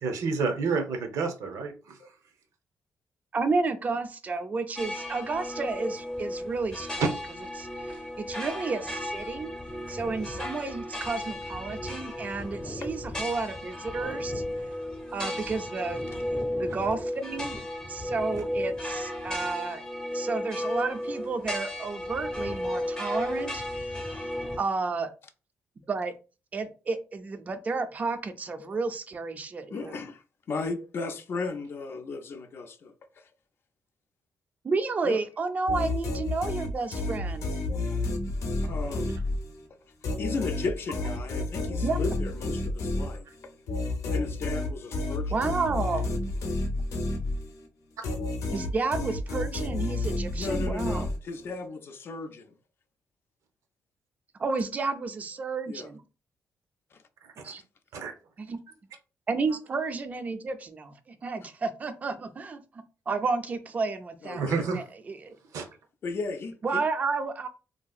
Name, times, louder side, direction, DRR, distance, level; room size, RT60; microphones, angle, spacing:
voice 1, 0.0-1.7 7.0-7.1 16.5-16.6 19.3-19.5 38.6-39.0 57.4-57.5 57.9-58.1 64.3-64.8 65.5-65.7, right 4 dB, 80° right, 0.6 m, -29 dB
voice 2, 3.3-7.1 7.6-9.5 9.9-14.4 15.1-17.6 17.9-19.8 20.1-24.2 24.6-25.1 25.9-26.1 26.5-30.0 34.6-37.5 41.8-42.1 45.3-46.1 48.5-51.1 54.4-56.0 57.4-57.6 58.4-58.6 59.3-65.4 66.6-67.5, right 4 dB, 30° right, 0.3 m, -31 dB
sound 1, 4.8-24.6, left 1 dB, 15° left, 0.7 m, -34 dB
voice 3, 29.7-33.3 35.0-35.2 38.6-39.1 40.2-43.3 44.0-45.5 50.3-52.5 55.7-55.9 56.9-57.0 64.2-64.7 66.0-66.8, left 4 dB, 45° left, 0.4 m, -35 dB
sound 2, 35.7-39.7 40.0-47.7 48.0-51.5, left 2 dB, 85° left, 0.7 m, -31 dB
3.2 x 2.7 x 2.3 m
wide cardioid pair, 155°, 5 cm